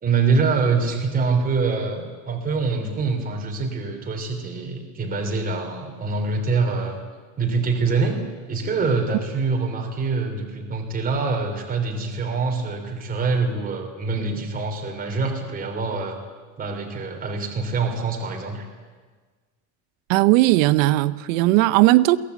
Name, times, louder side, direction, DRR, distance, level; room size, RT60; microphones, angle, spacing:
voice 1, 0.0-7.0 7.4-8.2 8.5-16.2 16.6-18.7, right 4 dB, 20° right, 3.2 m, -25 dB
voice 2, 20.1-22.2, right 18 dB, 90° right, 0.9 m, -17 dB
22.5 x 17.0 x 8.3 m
cardioid pair, 145°, 39 cm